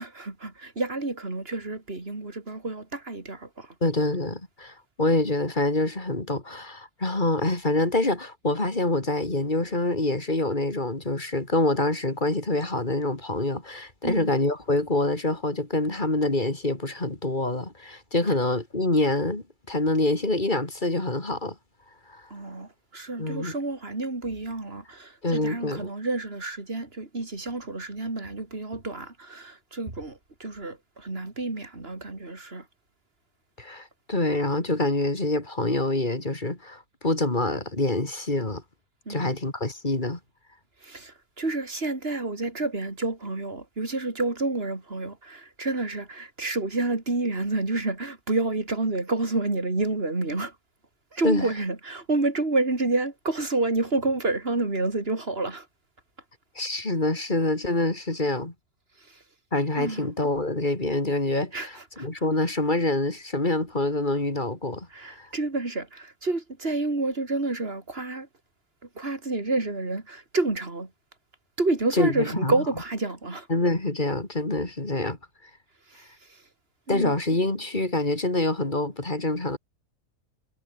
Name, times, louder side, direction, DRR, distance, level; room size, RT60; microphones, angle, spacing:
voice 1, 0.0-3.7 14.0-14.3 22.3-32.6 39.1-39.3 40.8-50.5 51.1-55.7 59.1-59.2 59.8-60.1 61.5-62.1 64.9-68.3 69.0-70.9 71.6-73.5 75.9-76.1 76.9-77.2, right 2 dB, 40° right, 4.1 m, -29 dB
voice 2, 3.8-21.6 22.1-22.2 23.2-23.5 25.2-25.9 33.6-38.6 39.1-40.2 51.2-51.5 56.6-58.5 59.5-65.3 71.9-72.5 73.5-75.2 76.9-79.6, left 2 dB, 30° left, 3.8 m, -26 dB
omnidirectional pair, 1.5 m